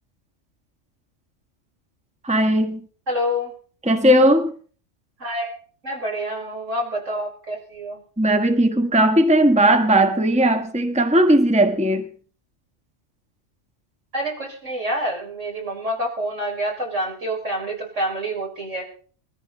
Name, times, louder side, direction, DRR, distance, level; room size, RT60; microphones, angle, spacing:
voice 1, 2.2-2.9 3.8-4.5 8.2-12.1, right 1 dB, 5° right, 1.3 m, -17 dB
voice 2, 3.1-3.5 5.2-5.6 5.8-8.0 14.1-18.8, equal, 80° right, 6.2 m, -27 dB
20.5 x 14.0 x 4.2 m
omnidirectional pair, 1.3 m